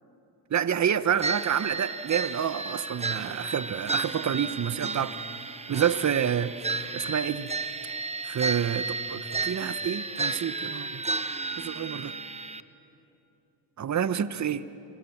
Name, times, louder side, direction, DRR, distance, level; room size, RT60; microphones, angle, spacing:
voice 1, 0.5-5.2 5.7-7.5 8.2-11.0 11.6-12.1 13.8-14.6, right 8 dB, 35° right, 14 dB, 1.0 m, -28 dB
sound 1, 1.2-12.6, right 3 dB, 15° right, 0.9 m, -33 dB
28.5 x 25.0 x 7.3 m, 2.9 s
cardioid pair, 80°, 46 cm